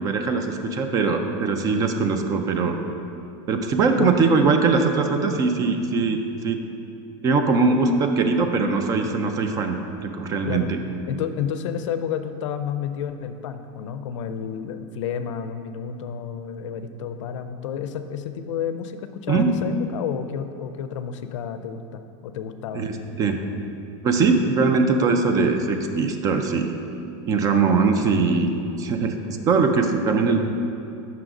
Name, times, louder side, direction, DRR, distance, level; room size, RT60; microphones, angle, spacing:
voice 1, 0.0-2.8 3.5-6.6 7.2-10.8 19.3-19.6 22.7-23.4 24.0-26.8 27.3-28.5 28.8-30.5, right 4 dB, 20° right, 6 dB, 0.3 m, -21 dB
voice 2, 11.1-22.9, left 8 dB, 85° left, 9 dB, 0.4 m, -30 dB
5.6 x 3.8 x 5.9 m, 2.6 s
supercardioid pair, 155°, 16 cm